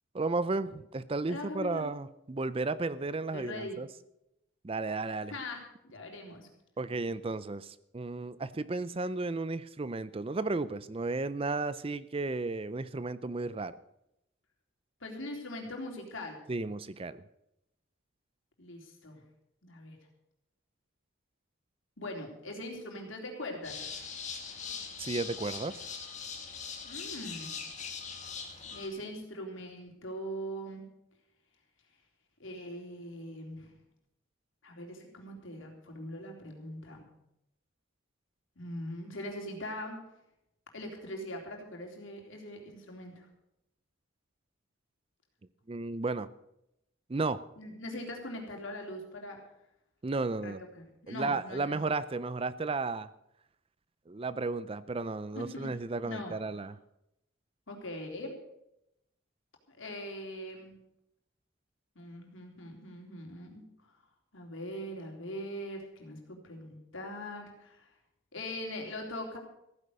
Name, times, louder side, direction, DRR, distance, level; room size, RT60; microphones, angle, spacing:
voice 1, 0.1-3.9 4.6-5.3 6.8-13.7 16.5-17.2 25.0-25.8 45.7-46.3 47.1-47.4 50.0-50.6 51.1-53.1 54.1-56.8, right 3 dB, 25° right, 16 dB, 0.5 m, -33 dB
voice 2, 1.3-1.9 3.3-3.8 5.3-6.5 15.0-16.4 18.6-19.2 19.6-20.0 22.0-23.8 26.8-27.5 28.7-30.8 32.4-33.7 34.6-37.1 38.6-40.0 40.7-43.3 47.6-49.4 50.4-51.8 55.4-55.7 56.0-56.7 57.7-58.4 59.7-60.7 62.0-63.9 64.3-67.9 68.3-69.4, left 1 dB, 70° left, 1 dB, 3.6 m, -41 dB
sound 1, 23.6-28.9, left 6 dB, 35° left, 2.2 m, -41 dB
15.5 x 10.0 x 6.7 m, 0.82 s
head